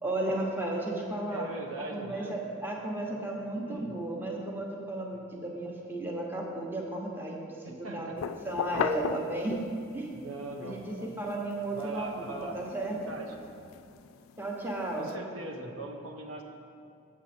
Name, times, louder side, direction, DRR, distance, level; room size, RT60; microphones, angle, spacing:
voice 1, 0.0-1.5 1.9-9.6 9.9-10.2 10.6-13.1 14.4-15.1, right 1 dB, 10° right, -1 dB, 0.9 m, -34 dB
voice 2, 1.3-2.3 3.1-3.2 3.6-3.9 7.6-8.2 10.1-11.1 11.7-12.6 12.9-13.3 14.9-16.4, right 2 dB, 90° right, 2 dB, 0.9 m, -40 dB
sound 1, 8.2-10.0 10.5-15.1, left 7 dB, 85° left, 0.3 m, -38 dB
7.7 x 7.3 x 4.3 m, 2.5 s
head